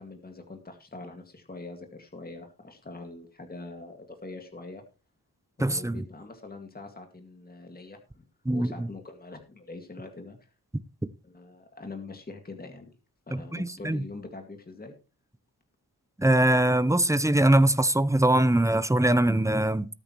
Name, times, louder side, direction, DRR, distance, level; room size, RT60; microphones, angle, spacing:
voice 1, 0.0-4.8 5.6-8.2 8.5-10.5 11.2-12.9 13.3-14.9, left 3 dB, 25° left, 2.0 m, -43 dB
voice 2, 5.6-6.0 8.5-8.7 13.3-14.0 16.2-19.9, right 1 dB, 10° right, 0.6 m, -22 dB
19.0 x 8.7 x 3.0 m
wide cardioid pair, 155°, 37 cm